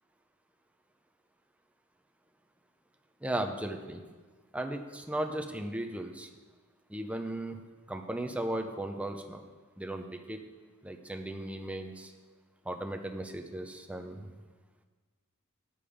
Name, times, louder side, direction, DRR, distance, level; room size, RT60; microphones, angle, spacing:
voice 1, 3.2-4.0 4.5-6.3 6.9-7.6 7.9-9.4 9.8-10.4 10.8-12.1 12.6-14.4, right 1 dB, 5° right, 3 dB, 0.5 m, -36 dB
9.3 x 6.9 x 5.0 m, 1.4 s
head